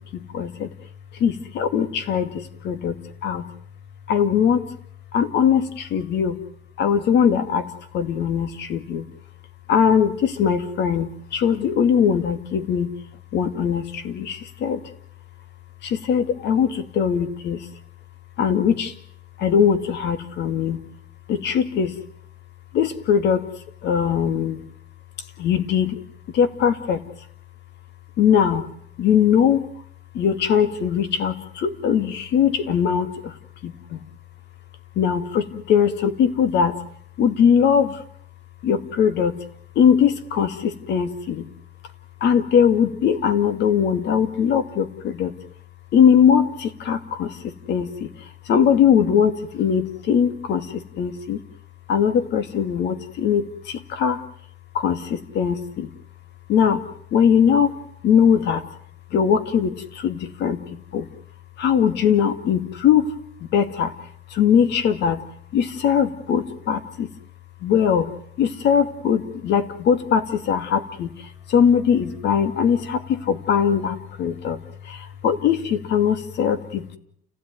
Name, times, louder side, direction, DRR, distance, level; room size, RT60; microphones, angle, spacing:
voice 1, 0.1-0.7 1.2-3.5 4.1-4.6 5.1-6.4 6.8-9.1 9.7-12.9 13.3-14.8 15.8-17.7 18.4-18.9 19.4-20.8 21.3-22.0 22.7-23.5 23.8-24.6 25.4-26.0 26.3-27.0 28.2-28.7 29.0-29.6 30.1-33.3 33.6-34.0 35.0-36.8 37.2-38.0 38.6-39.4 39.8-41.5 42.2-45.4 45.9-48.1 48.5-51.4 51.9-54.2 54.7-55.9 56.5-56.8 57.1-57.7 58.0-58.6 59.1-61.1 61.6-63.2 63.5-63.9 64.3-65.2 65.5-67.1 67.6-68.1 68.4-74.6 74.8-77.0, left 8 dB, 55° left, 11 dB, 2.3 m, -21 dB
29.5 x 16.5 x 9.5 m, 0.69 s
cardioid pair, 145°, 21 cm